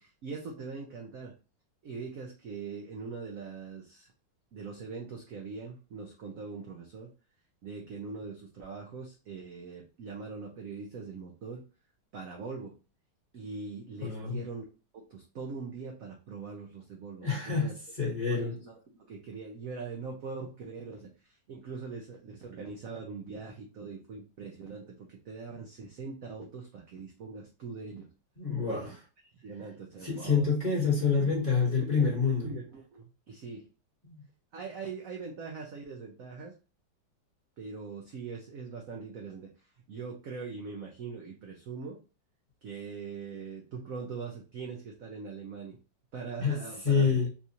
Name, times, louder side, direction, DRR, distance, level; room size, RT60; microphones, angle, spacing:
voice 1, 0.0-1.3 1.8-4.1 4.5-7.1 7.6-11.6 12.1-12.7 13.3-14.6 14.9-17.8 18.3-21.1 21.5-28.1 28.7-28.9 29.4-30.5 30.8-32.1 32.4-33.7 34.5-36.5 37.6-39.5 39.9-42.0 42.6-45.8 46.1-47.3, right 5 dB, 70° right, 0 dB, 0.8 m, -42 dB
voice 2, 14.0-14.4 17.2-17.7 18.0-18.5 28.4-28.9 30.0-32.5 34.0-34.2 46.4-46.6 46.8-47.3, left 5 dB, 25° left, -4 dB, 1.2 m, -27 dB
4.2 x 2.4 x 2.8 m, 0.33 s
omnidirectional pair, 2.1 m